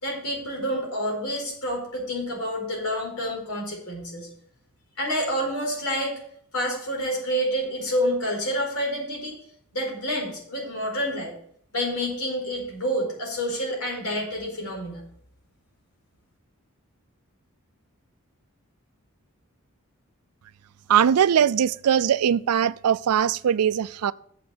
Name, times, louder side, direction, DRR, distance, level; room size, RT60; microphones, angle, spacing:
voice 1, 0.0-4.3 5.0-6.1 6.5-9.3 9.7-11.3 11.7-15.0, equal, 90° left, 4.4 m, -28 dB
voice 2, 20.9-24.1, right 8 dB, 90° right, 0.4 m, -21 dB
7.4 x 6.2 x 7.8 m
head